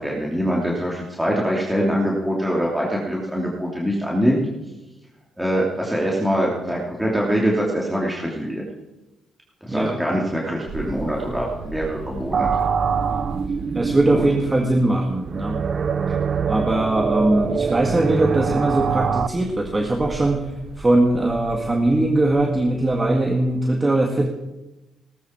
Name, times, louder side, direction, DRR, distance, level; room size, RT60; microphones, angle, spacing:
voice 1, 0.0-4.4 5.4-8.6 9.6-12.5 14.1-14.2, equal, 5° right, -3 dB, 3.0 m, -23 dB
sound 1, 10.7-23.6, right 4 dB, 70° right, 3.3 m, -39 dB
sound 2, 12.3-19.3, right 6 dB, 45° right, 0.7 m, -24 dB
voice 2, 13.7-15.6 16.5-20.5 20.8-24.3, right 2 dB, 20° right, 2 dB, 1.9 m, -20 dB
18.5 x 14.0 x 4.5 m, 1.0 s
cardioid pair, 90°, 0 cm